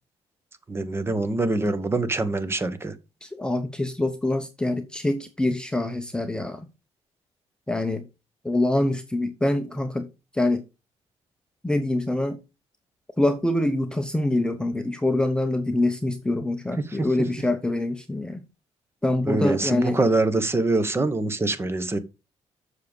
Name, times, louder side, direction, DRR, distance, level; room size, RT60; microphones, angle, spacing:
voice 1, 0.7-2.9 19.3-22.0, right 2 dB, 20° right, 1.2 m, -24 dB
voice 2, 3.2-6.7 7.7-8.1 8.4-10.1 10.3-10.6 11.6-12.4 13.2-18.4 19.0-20.0, left 1 dB, 5° left, 0.8 m, -25 dB
7.6 x 6.6 x 5.3 m
cardioid pair, 120°, 11 cm